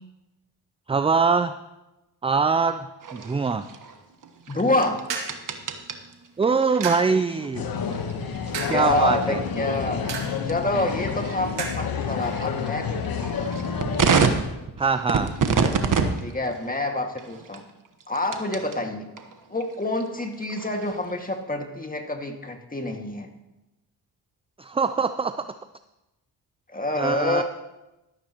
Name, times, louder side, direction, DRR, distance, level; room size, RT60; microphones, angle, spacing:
voice 1, 0.9-1.6 2.2-3.7 6.4-7.7 8.7-9.4 14.8-15.3 24.6-25.6 27.0-27.4, right 5 dB, 15° right, 11 dB, 0.4 m, -23 dB
sound 1, 3.0-18.8 19.2-21.3, right 5 dB, 45° right, 1.3 m, -30 dB
voice 2, 4.5-5.0 8.7-13.6 16.2-17.6 18.1-19.1 19.5-23.3 26.7-27.4, left 2 dB, 20° left, 4 dB, 2.0 m, -27 dB
sound 2, 4.6-14.0, right 5 dB, 65° right, 2.4 m, -39 dB
sound 3, 7.5-14.3, left 6 dB, 50° left, 1.2 m, -29 dB
13.5 x 13.0 x 3.0 m, 0.97 s
supercardioid pair, 55°, 46 cm